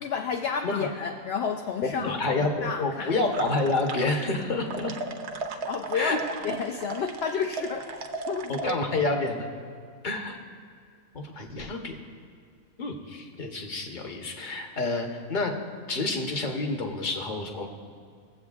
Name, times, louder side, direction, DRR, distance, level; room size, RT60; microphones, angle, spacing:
voice 1, 0.0-3.2 5.6-8.8, left 6 dB, 65° left, 3 dB, 0.7 m, -31 dB
voice 2, 1.8-4.9 5.9-6.2 8.5-9.5 10.0-10.4 11.1-12.0 12.8-15.5 15.9-17.7, left 2 dB, 40° left, 3 dB, 1.0 m, -28 dB
sound 1, 3.3-4.4 4.7-8.7, right 4 dB, 60° right, 0.8 m, -36 dB
21.0 x 7.6 x 2.4 m, 2.2 s
omnidirectional pair, 1.4 m